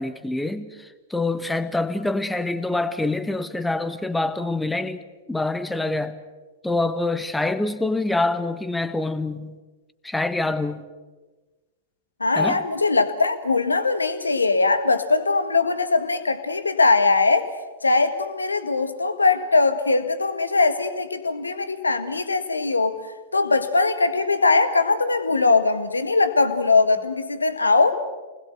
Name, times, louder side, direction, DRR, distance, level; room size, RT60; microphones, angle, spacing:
voice 1, 0.0-5.0 5.3-6.2 6.6-9.6 10.0-10.8 12.3-12.6, left 2 dB, 5° left, 11 dB, 1.4 m, -26 dB
voice 2, 12.2-17.5 17.8-23.0 23.3-27.9, left 3 dB, 75° left, 10 dB, 1.7 m, -21 dB
28.5 x 20.5 x 8.0 m, 1.2 s
figure-of-eight pair, 95°, 0 cm